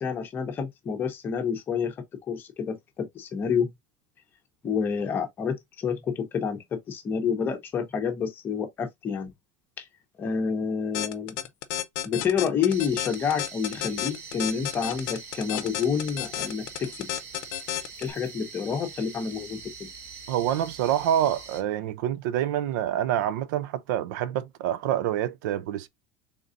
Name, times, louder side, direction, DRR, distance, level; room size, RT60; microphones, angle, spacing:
voice 1, 0.0-1.9 2.3-3.7 4.6-9.3 9.8-9.9 10.2-11.4 12.0-17.1 18.0-19.6, left 6 dB, 20° left, 0.8 m, -28 dB
sound 1, 10.9-18.1, left 13 dB, 50° left, 0.7 m, -31 dB
sound 2, 12.7-21.6, right 5 dB, 30° right, 0.9 m, -43 dB
voice 2, 20.3-25.9, right 11 dB, 75° right, 0.5 m, -27 dB
3.9 x 3.6 x 2.5 m
cardioid pair, 175°, 10 cm